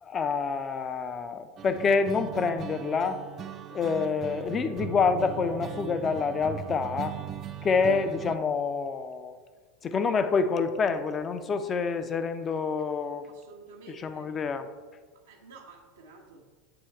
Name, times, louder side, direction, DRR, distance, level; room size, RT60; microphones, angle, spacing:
voice 1, 0.0-3.2 3.7-7.2 7.6-9.3 9.8-13.3 13.9-14.7, left 5 dB, 30° left, 10 dB, 0.4 m, -27 dB
sound 1, 1.6-8.4, right 10 dB, 35° right, 0.3 m, -39 dB
voice 2, 13.3-14.3 15.3-16.4, right 4 dB, 85° right, -3 dB, 0.7 m, -50 dB
7.8 x 3.0 x 4.3 m, 1.4 s
hypercardioid pair, 90°, 0 cm